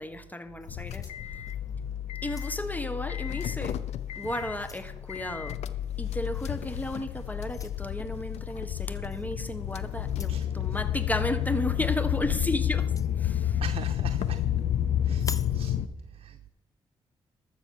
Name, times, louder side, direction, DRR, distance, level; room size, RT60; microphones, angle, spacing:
voice 1, 0.0-1.4 2.2-3.8 4.1-5.6 6.0-12.9 13.2-13.6, left 1 dB, 15° left, 11 dB, 1.4 m, -34 dB
sound 1, 0.6-1.7 2.2-2.8 3.6-3.8 4.2-4.9 6.3-6.6 7.5-7.8 9.1-9.3 10.0-10.5 12.7-13.1 15.1-15.6, left 4 dB, 30° left, 0.7 m, -44 dB
sound 2, 0.7-15.9, left 11 dB, 85° left, 0.6 m, -30 dB
voice 2, 13.6-14.4 15.0-15.8 16.1-16.5, right 8 dB, 60° right, 7 dB, 0.7 m, -42 dB
12.5 x 7.1 x 6.7 m, 0.96 s
supercardioid pair, 50°, 11 cm